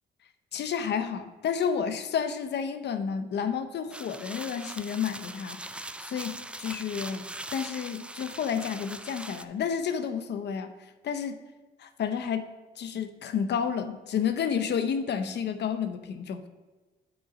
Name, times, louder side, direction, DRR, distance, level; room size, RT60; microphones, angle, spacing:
voice 1, 0.5-10.7 11.0-11.4 11.8-12.5 12.8-16.4, left 7 dB, 60° left, 10 dB, 0.7 m, -31 dB
sound 1, 3.9-9.5, right 1 dB, 5° right, 0.3 m, -41 dB
8.8 x 3.9 x 4.9 m, 1.3 s
cardioid pair, 90°, 20 cm